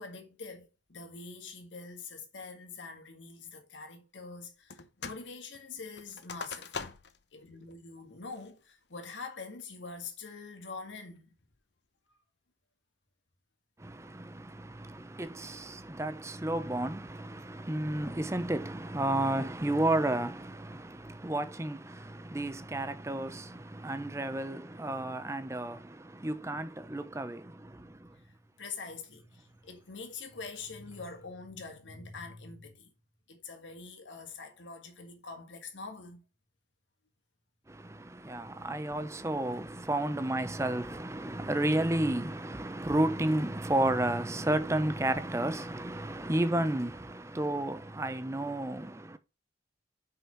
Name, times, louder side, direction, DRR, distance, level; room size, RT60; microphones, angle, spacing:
voice 1, 0.0-7.0 7.3-11.3 12.1-12.2 28.2-32.9 33.3-36.2, left 4 dB, 90° left, 1.9 m, -45 dB
sound 1, 4.7-5.3 5.5-7.2 7.7-7.8 8.3-8.7 9.2-9.6, left 5 dB, 70° left, 0.9 m, -42 dB
voice 2, 13.8-28.2 37.7-49.2, right 1 dB, 15° right, 0.7 m, -32 dB
5.7 x 5.4 x 5.5 m
head